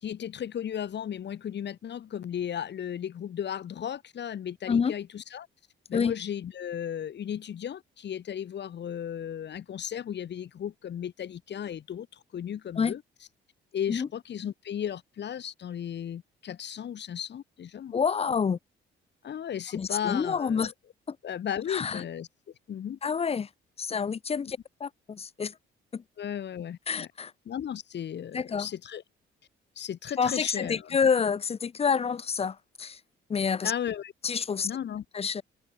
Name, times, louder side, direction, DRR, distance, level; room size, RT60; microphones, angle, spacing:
voice 1, 0.0-5.5 5.9-13.0 13.7-18.0 19.2-20.7 21.2-22.3 22.7-23.0 26.2-27.1 27.5-29.0 29.8-31.0 33.6-34.1 34.6-35.0, left 9 dB, 60° left, 2.2 m, -35 dB
voice 2, 17.9-18.6 19.7-20.7 21.1-21.2 21.7-22.0 23.0-23.5 23.8-25.5 25.9-26.0 26.9-27.3 28.3-28.7 30.2-33.0 33.3-33.7 34.2-34.7 35.1-35.4, left 6 dB, 30° left, 0.6 m, -28 dB
cardioid pair, 80°, 21 cm